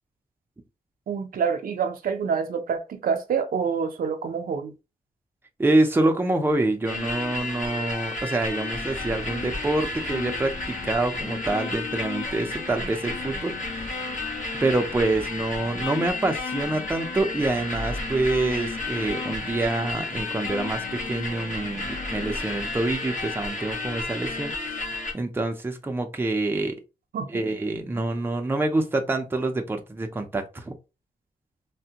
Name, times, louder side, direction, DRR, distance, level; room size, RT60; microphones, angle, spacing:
voice 1, 1.1-4.7 27.1-27.4, right 6 dB, 80° right, 0.6 m, -27 dB
voice 2, 5.6-13.5 13.8-13.9 14.6-24.9 25.1-26.8 27.3-30.7, right 2 dB, 15° right, 0.5 m, -26 dB
sound 1, 6.9-25.1, left 3 dB, 60° left, 1.3 m, -32 dB
3.3 x 2.1 x 2.8 m
wide cardioid pair, 135°, 15 cm